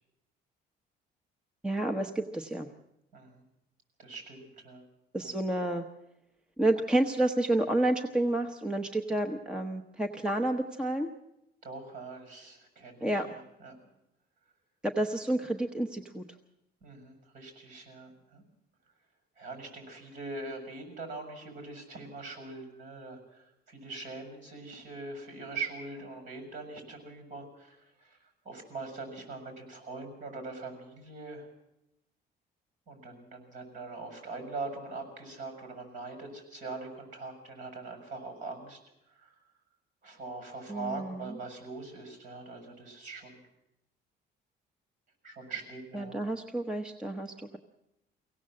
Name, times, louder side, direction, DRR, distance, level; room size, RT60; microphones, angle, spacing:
voice 1, 1.6-2.7 5.1-5.8 6.6-11.1 13.0-13.3 14.8-16.3 40.7-41.4 45.9-47.6, right 1 dB, 5° right, 3 dB, 0.9 m, -30 dB
voice 2, 3.1-3.4 4.0-4.9 5.2-5.3 11.6-13.8 16.8-18.4 19.4-28.2 28.4-31.5 32.9-38.8 39.1-39.3 40.0-43.4 45.2-46.2, right 3 dB, 45° right, 6 dB, 6.7 m, -42 dB
24.5 x 17.0 x 7.6 m, 0.87 s
cardioid pair, 160°, 18 cm